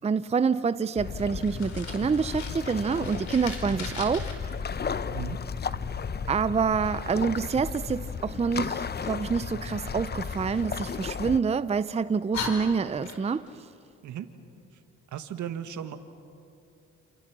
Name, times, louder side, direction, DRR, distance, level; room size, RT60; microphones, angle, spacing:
voice 1, 0.0-4.3 6.3-13.6, right 5 dB, 20° right, 0.6 m, -27 dB
sound 1, 1.0-11.4, left 6 dB, 35° left, 0.8 m, -34 dB
Fire, 1.3-4.3 10.2-11.5 12.0-12.1 12.3-13.5, left 4 dB, 65° left, 4.5 m, -39 dB
voice 2, 15.1-16.0, right 10 dB, 75° right, 1.7 m, -36 dB
28.0 x 28.0 x 6.1 m
cardioid pair, 90°, 30 cm